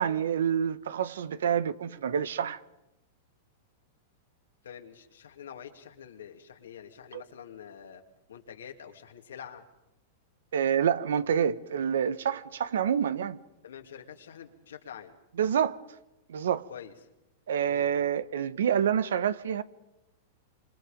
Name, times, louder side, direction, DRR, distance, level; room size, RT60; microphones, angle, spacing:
voice 1, 0.0-2.6 7.1-7.2 10.5-13.4 15.4-15.8 16.3-16.7 17.5-19.6, right 8 dB, 85° right, 1.1 m, -27 dB
voice 2, 4.6-8.0 8.3-9.6 13.6-15.2 16.7-16.9 17.6-17.9, left 8 dB, 90° left, 2.7 m, -46 dB
26.5 x 26.5 x 5.2 m
hypercardioid pair, 125°, 0 cm